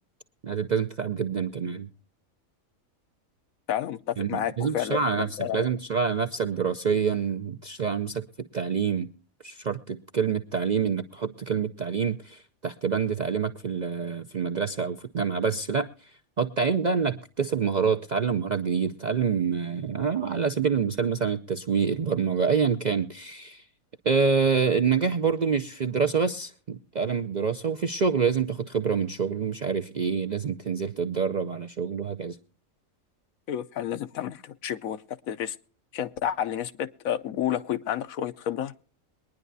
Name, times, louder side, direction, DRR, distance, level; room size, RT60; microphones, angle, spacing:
voice 1, 0.4-1.9 4.2-5.3 5.5-9.1 9.4-16.1 16.4-23.6 24.0-32.4, right 6 dB, 55° right, 0.5 m, -26 dB
voice 2, 3.7-5.7 33.5-35.6 35.9-38.8, left 10 dB, 75° left, 1.1 m, -30 dB
22.5 x 10.0 x 2.7 m
omnidirectional pair, 1.5 m